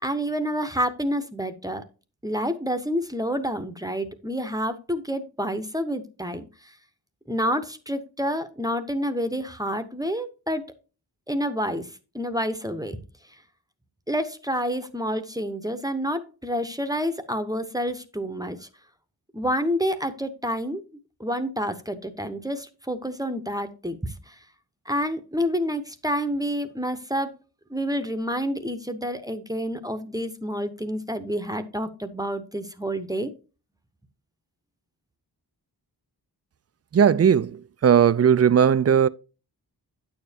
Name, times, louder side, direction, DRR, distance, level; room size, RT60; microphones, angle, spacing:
voice 1, 0.0-1.8 2.2-6.7 7.3-10.6 11.3-13.0 14.1-18.7 19.3-20.8 21.2-24.4 24.9-27.3 27.7-33.3, equal, 10° right, 0.8 m, -28 dB
voice 2, 36.9-37.5 37.8-39.1, right 8 dB, 40° right, 0.4 m, -17 dB
9.0 x 7.0 x 2.8 m
cardioid pair, 50°, 41 cm